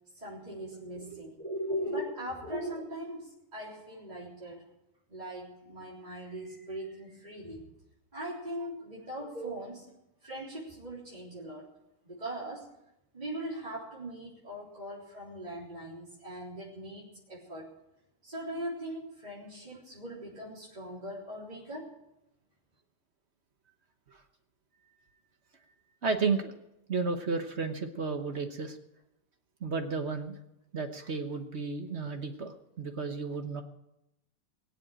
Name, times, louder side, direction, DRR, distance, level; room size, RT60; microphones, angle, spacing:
voice 1, 0.1-4.6 5.1-7.6 8.1-9.9 10.2-11.7 12.0-12.7 13.1-17.7 18.2-21.9, right 1 dB, 20° right, -8 dB, 3.9 m, -40 dB
voice 2, 1.0-1.3 26.0-26.5 26.9-28.8 29.6-30.3 30.7-33.6, right 4 dB, 40° right, 6 dB, 1.0 m, -33 dB
21.0 x 7.6 x 8.8 m, 0.87 s
omnidirectional pair, 2.4 m